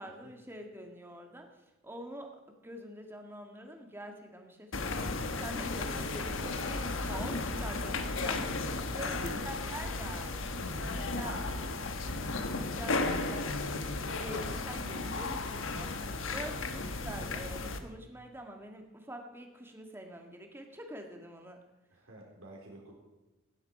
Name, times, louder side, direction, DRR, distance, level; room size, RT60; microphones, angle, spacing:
voice 1, 0.0-1.5 1.8-2.3 2.6-5.1 5.4-10.3 10.9-11.4 12.6-13.7 14.0-15.9 16.3-21.6, right 1 dB, 10° right, 3 dB, 1.7 m, -45 dB
sound 1, 4.7-17.8, left 3 dB, 75° left, 1.2 m, -34 dB
voice 2, 8.9-9.6 10.6-11.9 21.9-22.9, right 1 dB, 85° right, -1 dB, 4.0 m, -51 dB
16.5 x 11.0 x 4.8 m, 1.1 s
head